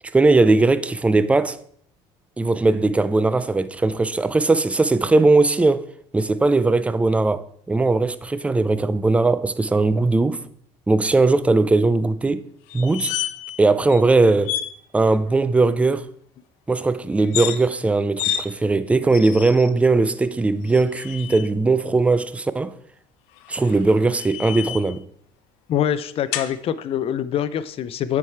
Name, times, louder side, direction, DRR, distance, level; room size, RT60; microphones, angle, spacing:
voice 1, 0.1-1.6 2.4-5.8 6.1-10.4 10.9-12.5 12.7-13.1 13.6-14.6 14.9-16.1 16.7-22.8 23.5-25.0, right 3 dB, 10° right, 0.4 m, -19 dB
sound 1, 12.7-13.6 13.9-14.0 14.4-14.7 17.2-17.6 18.2-18.4 19.1-19.7 20.7-21.5 23.4-25.0 26.3-26.5, left 12 dB, 90° left, 0.7 m, -29 dB
voice 2, 25.7-28.2, left 10 dB, 50° left, 0.5 m, -24 dB
8.9 x 4.8 x 4.6 m
cardioid pair, 110°, 13 cm